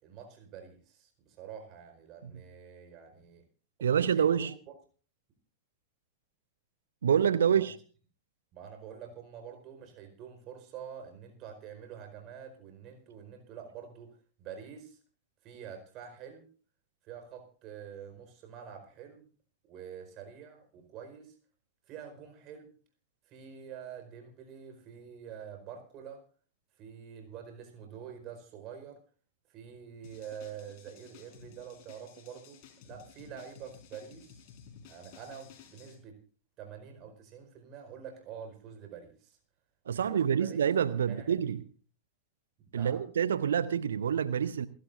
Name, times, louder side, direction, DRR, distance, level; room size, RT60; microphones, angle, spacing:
voice 1, 0.0-3.4 3.8-4.5 7.4-7.7 8.5-15.0 15.4-16.5 17.0-19.3 19.7-21.3 21.9-22.7 23.3-26.2 26.8-29.0 29.5-34.4 34.9-36.2 36.6-39.4 39.9-40.6 41.0-41.6 42.6-43.1, right 8 dB, 35° right, 4.7 m, -47 dB
voice 2, 3.8-4.5 7.0-7.7 39.9-41.6 42.7-44.7, right 8 dB, 65° right, 0.7 m, -27 dB
sound 1, 30.0-36.0, left 7 dB, 45° left, 4.9 m, -55 dB
28.0 x 12.0 x 2.6 m
figure-of-eight pair, 90°, 0 cm